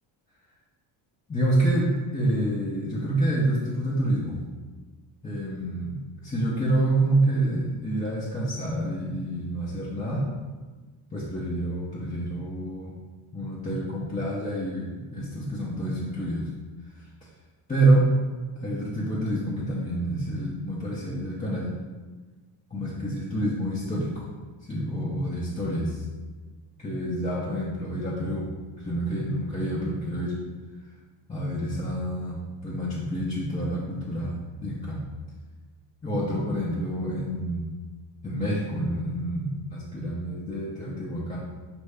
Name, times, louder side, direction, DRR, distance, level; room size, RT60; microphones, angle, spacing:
voice 1, 1.3-4.4 5.2-6.0 6.2-10.3 11.1-13.0 13.3-16.5 17.7-18.1 18.6-21.7 22.7-24.3 24.7-26.0 26.8-28.5 28.8-30.4 31.3-35.0 36.0-37.7 38.2-41.4, right 1 dB, 15° left, -7 dB, 0.6 m, -27 dB
5.4 x 2.6 x 3.3 m, 1.4 s
cardioid pair, 120°, 48 cm